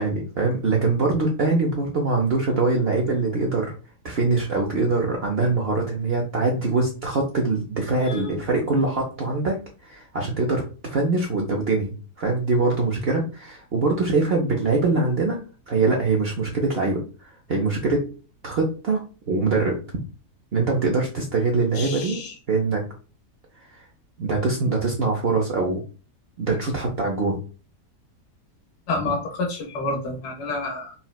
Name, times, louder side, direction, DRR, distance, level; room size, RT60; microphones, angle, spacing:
voice 1, 0.0-3.7 4.0-15.4 15.7-18.1 18.4-19.8 20.5-22.2 22.5-22.8 23.7-23.8 24.2-25.8 26.4-27.4 29.0-29.1, right 3 dB, 65° right, 0 dB, 0.6 m, -23 dB
voice 2, 21.8-22.3 28.9-30.9, left 3 dB, 85° left, 0 dB, 1.4 m, -29 dB
4.2 x 2.1 x 2.2 m, 0.35 s
omnidirectional pair, 1.7 m